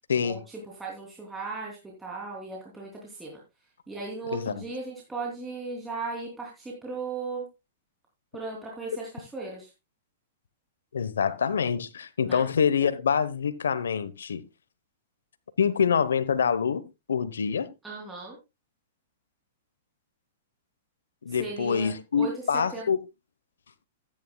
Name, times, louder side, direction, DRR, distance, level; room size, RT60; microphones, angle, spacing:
voice 1, 0.2-3.4 3.9-7.5 8.3-9.7 12.2-12.4 17.8-18.4 21.3-22.4 22.7-22.9, right 3 dB, 10° right, 3.0 m, -37 dB
voice 2, 4.3-4.6 10.9-14.4 15.6-16.8 17.1-17.7 21.2-23.0, left 7 dB, 85° left, 1.0 m, -26 dB
14.0 x 10.0 x 2.3 m
hypercardioid pair, 130°, 0 cm